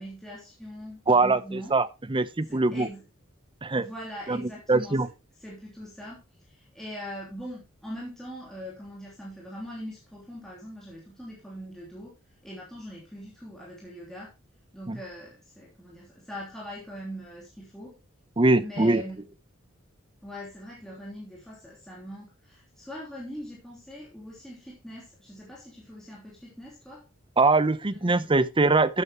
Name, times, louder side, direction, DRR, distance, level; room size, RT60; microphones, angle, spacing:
voice 1, 0.0-1.7 2.5-3.0 3.7-5.0 5.4-12.2 12.4-14.3 14.7-18.0 18.6-19.3 20.2-27.1 27.9-28.3, equal, 5° left, 3.1 m, -41 dB
voice 2, 1.1-2.9 3.6-3.9 4.3-4.4 4.7-5.1 14.9-15.0 18.4-19.0 27.4-29.0, right 3 dB, 25° right, 0.7 m, -22 dB
12.0 x 8.8 x 3.0 m
head